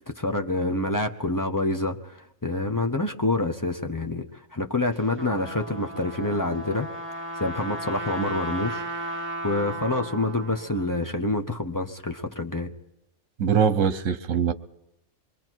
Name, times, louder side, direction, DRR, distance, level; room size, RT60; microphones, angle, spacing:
voice 1, 0.0-6.9 7.1-12.7, left 2 dB, 15° left, 3 dB, 0.9 m, -27 dB
Trumpet, 5.2-10.9, right 1 dB, 10° right, 1.8 m, -35 dB
voice 2, 13.4-14.5, right 7 dB, 70° right, 12 dB, 1.3 m, -22 dB
26.5 x 22.5 x 4.6 m, 0.85 s
omnidirectional pair, 1.4 m